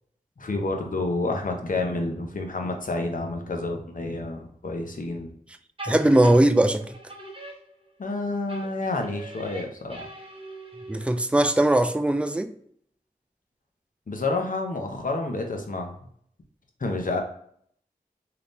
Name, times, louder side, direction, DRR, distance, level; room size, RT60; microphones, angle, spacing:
voice 1, 0.4-5.3 8.0-10.0 14.1-15.9 16.8-17.2, left 2 dB, 60° left, 0.8 m, -29 dB
voice 2, 5.8-6.8 10.9-12.5, right 1 dB, 5° right, 0.4 m, -20 dB
sound 1, 5.8-8.1 8.5-11.3, right 1 dB, 35° right, 0.8 m, -42 dB
3.4 x 2.8 x 2.5 m
cardioid pair, 45°, 16 cm